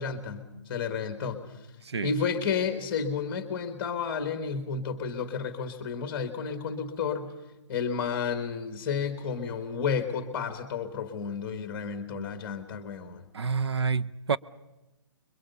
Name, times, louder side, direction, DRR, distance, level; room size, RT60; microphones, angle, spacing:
voice 1, 0.0-1.4 2.0-7.3 7.7-13.2, left 6 dB, 10° left, 1.3 m, -31 dB
voice 2, 13.3-14.4, right 5 dB, 65° right, 0.7 m, -28 dB
25.5 x 22.5 x 6.8 m
hypercardioid pair, 180°, 15 cm